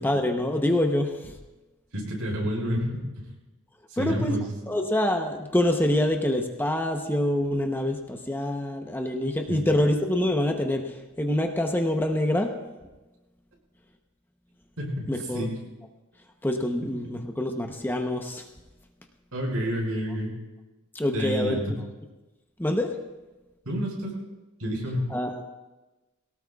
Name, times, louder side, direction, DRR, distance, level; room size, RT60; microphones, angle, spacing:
voice 1, 0.0-1.3 4.0-4.4 4.7-12.5 15.1-15.5 16.4-18.4 20.9-21.6 22.6-22.9 25.1-25.4, left 1 dB, 10° left, 3 dB, 0.8 m, -26 dB
voice 2, 1.9-3.0 3.9-4.5 9.5-9.6 14.8-15.1 15.3-15.6 19.3-20.4 21.0-21.7 23.7-24.1 24.6-25.1, equal, 85° right, -2 dB, 5.5 m, -29 dB
22.0 x 18.0 x 2.4 m, 1.1 s
head